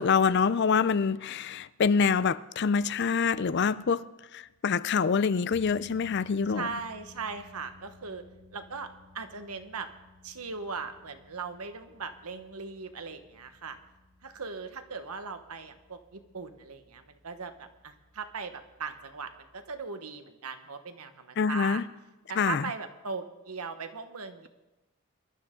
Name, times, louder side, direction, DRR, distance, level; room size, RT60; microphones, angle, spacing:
voice 1, 0.0-4.1 4.3-6.7 21.4-21.8 22.4-22.6, left 5 dB, 50° left, 0.4 m, -26 dB
sound 1, 5.5-19.8, left 3 dB, 70° right, 2.9 m, -57 dB
voice 2, 6.5-8.2 8.5-8.9 9.1-9.9 10.2-13.8 14.2-21.8 22.3-24.5, right 5 dB, 85° right, 1.3 m, -39 dB
22.5 x 12.5 x 3.8 m
head